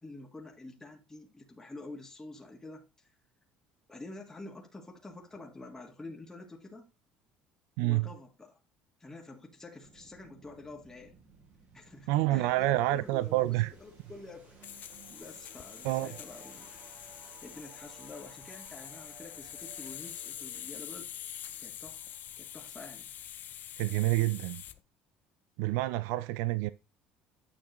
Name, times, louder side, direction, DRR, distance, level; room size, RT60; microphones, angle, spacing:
voice 1, 0.0-3.1 3.9-6.9 7.8-8.6 9.0-11.2 11.7-14.6 15.1-16.7 17.4-21.1 21.6-23.1, left 2 dB, 15° left, 1.6 m, -48 dB
voice 2, 7.8-8.1 12.1-13.7 15.8-16.1 23.8-24.6 25.6-26.7, right 17 dB, 80° right, 0.3 m, -28 dB
sound 1, 9.8-22.6, right 5 dB, 55° right, 3.0 m, -58 dB
sound 2, 12.4-24.8, left 11 dB, 50° left, 0.5 m, -46 dB
9.2 x 5.8 x 3.0 m
supercardioid pair, 85°, 4 cm